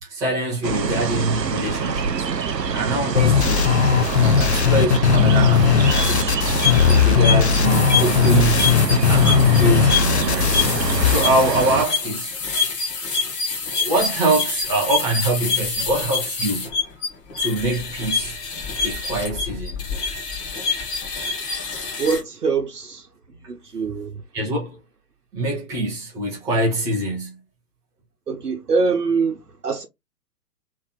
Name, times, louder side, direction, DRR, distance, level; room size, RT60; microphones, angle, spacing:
voice 1, 0.0-2.3 2.7-3.7 4.2-6.4 6.9-10.6 11.1-12.4 13.7-16.7 17.4-18.4 18.8-19.9 24.3-24.8 25.3-27.4, right 1 dB, 5° right, 0.7 m, -24 dB
sound 1, 0.6-11.9, right 6 dB, 90° right, 0.7 m, -25 dB
sound 2, 3.2-11.2, left 7 dB, 45° left, 0.6 m, -18 dB
sound 3, 6.3-22.2, left 5 dB, 20° left, 1.0 m, -26 dB
voice 2, 22.0-23.1 23.5-24.2 28.3-29.9, right 4 dB, 70° right, 1.1 m, -24 dB
3.2 x 3.1 x 3.9 m
figure-of-eight pair, 125°, 48 cm